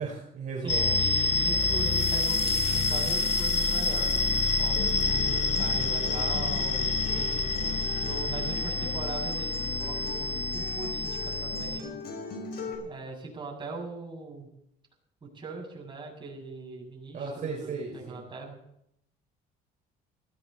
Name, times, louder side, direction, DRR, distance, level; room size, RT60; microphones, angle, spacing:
voice 1, 0.0-1.0 7.0-7.5 17.1-18.2, right 5 dB, 50° right, -1 dB, 4.7 m, -36 dB
voice 2, 0.6-7.3 8.0-11.9 12.8-14.5 15.2-18.6, right 3 dB, 30° right, 0 dB, 7.3 m, -40 dB
sound 1, 0.7-11.8, left 3 dB, 40° left, 1.3 m, -27 dB
sound 2, 1.4-6.2, left 9 dB, 90° left, 3.7 m, -43 dB
Acoustic guitar, 4.8-12.7, left 3 dB, 65° left, 6.1 m, -40 dB
19.5 x 16.5 x 4.2 m, 0.74 s
cardioid pair, 110°, 17 cm